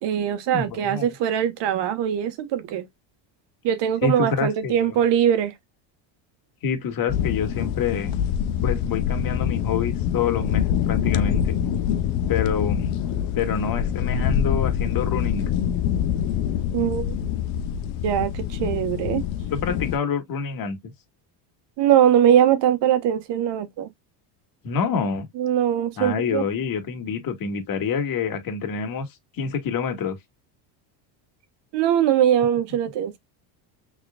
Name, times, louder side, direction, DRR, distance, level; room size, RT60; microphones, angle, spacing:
voice 1, 0.0-2.8 3.6-5.5 16.7-17.1 18.0-19.2 21.8-23.9 25.4-26.4 31.7-33.2, right 10 dB, 60° right, 1.4 m, -21 dB
voice 2, 0.5-1.1 4.0-5.0 6.6-8.2 8.6-11.5 12.3-12.9 13.4-15.4 19.5-20.9 24.6-25.3 26.0-29.1 29.3-30.2, left 6 dB, 45° left, 1.9 m, -27 dB
sound 1, 7.1-20.0, left 9 dB, 75° left, 0.9 m, -25 dB
6.2 x 3.6 x 2.3 m
cardioid pair, 125°, 48 cm